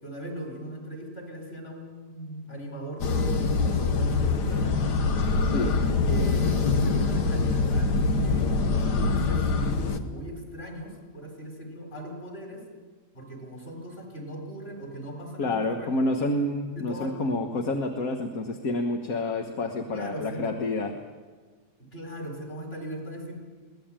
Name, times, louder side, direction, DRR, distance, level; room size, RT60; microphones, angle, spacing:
voice 1, 0.0-5.0 6.0-8.5 9.1-12.7 13.1-16.2 16.7-17.1 19.9-20.5 21.8-23.4, right 1 dB, 35° left, 3 dB, 4.6 m, -39 dB
sound 1, 3.0-10.0, left 4 dB, 75° left, 1.8 m, -24 dB
voice 2, 5.4-5.7 15.4-20.9, left 2 dB, 55° left, 4 dB, 1.7 m, -28 dB
23.5 x 17.5 x 8.9 m, 1.5 s
omnidirectional pair, 1.8 m